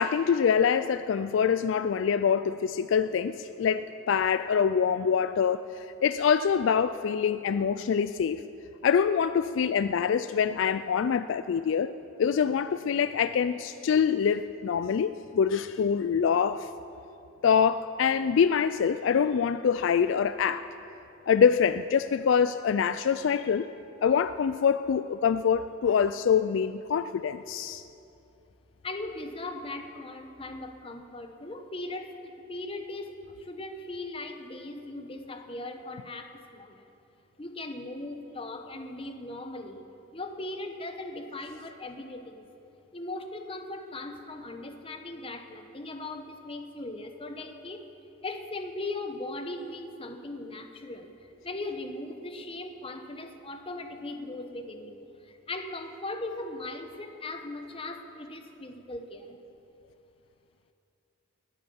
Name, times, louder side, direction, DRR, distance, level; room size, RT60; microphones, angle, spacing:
voice 1, 0.0-8.4 8.8-11.9 12.2-16.7 17.4-20.7 21.3-23.7 24.0-27.8, left 7 dB, 65° left, 13 dB, 0.3 m, -25 dB
voice 2, 28.8-36.9 37.4-39.9 40.1-42.5 42.9-47.9 48.2-59.4, left 2 dB, 25° left, 6 dB, 1.0 m, -39 dB
19.5 x 9.2 x 7.1 m, 2.8 s
head